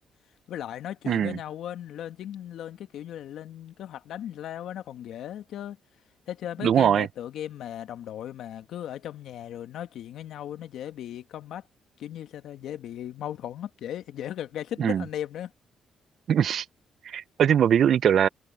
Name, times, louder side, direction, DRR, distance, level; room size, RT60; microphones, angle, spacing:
voice 1, 0.5-5.8 6.3-11.6 12.0-15.5, left 11 dB, 80° left, 1.9 m, -37 dB
voice 2, 1.1-1.4 6.6-7.1 14.8-15.0 16.3-16.6 17.0-18.3, right 9 dB, 65° right, 0.6 m, -21 dB
supercardioid pair, 70°, 0 cm